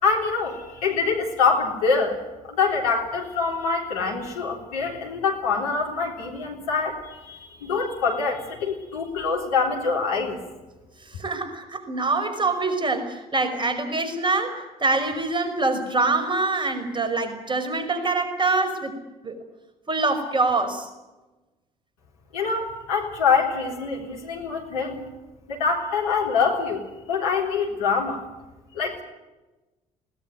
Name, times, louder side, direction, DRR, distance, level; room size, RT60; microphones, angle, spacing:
voice 1, 0.0-2.2 2.4-10.4 22.3-25.0 25.5-28.2 28.7-29.0, left 5 dB, 75° left, 0 dB, 3.7 m, -25 dB
voice 2, 11.1-19.0 19.2-19.4 19.9-20.9, right 3 dB, 25° right, 6 dB, 5.6 m, -25 dB
21.0 x 18.5 x 9.5 m, 1.1 s
figure-of-eight pair, 50°, 19 cm